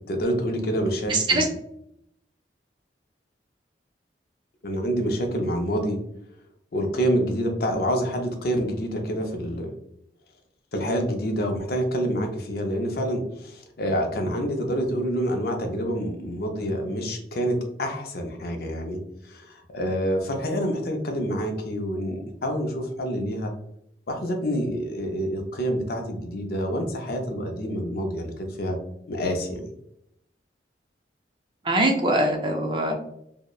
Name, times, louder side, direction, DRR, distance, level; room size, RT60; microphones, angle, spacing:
voice 1, 0.1-1.5 4.6-6.0 6.7-9.7 10.7-19.0 19.2-23.5 24.1-28.8 29.1-29.7, equal, 55° left, 3 dB, 0.5 m, -27 dB
voice 2, 1.1-1.5 31.6-32.9, right 2 dB, 25° right, 3 dB, 0.4 m, -22 dB
2.7 x 2.0 x 2.2 m, 0.75 s
head